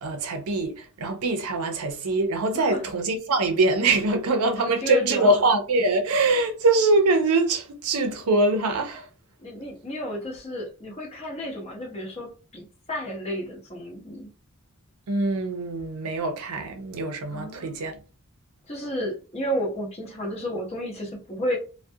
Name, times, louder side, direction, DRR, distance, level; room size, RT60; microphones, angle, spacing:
voice 1, 0.0-9.1 15.1-18.0, right 2 dB, 75° right, 0.5 m, -23 dB
voice 2, 4.6-5.3 9.4-14.3 17.3-17.8 18.7-21.6, equal, 30° left, 0.7 m, -31 dB
2.3 x 2.1 x 2.6 m
head